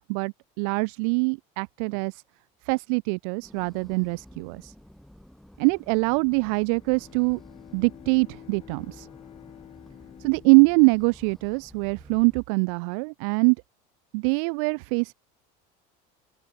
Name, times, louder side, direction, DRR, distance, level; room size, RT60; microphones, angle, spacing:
voice 1, 0.1-2.2 2.6-4.7 5.6-7.4 7.7-9.1 10.2-13.6 14.1-15.1, right 36 dB, 70° right, 0.7 m, -23 dB
sound 1, 3.4-12.5, equal, ahead, 3.9 m, -51 dB
Bowed string instrument, 6.5-12.2, left 11 dB, 30° left, 3.7 m, -50 dB
open air
cardioid pair, 165°, 18 cm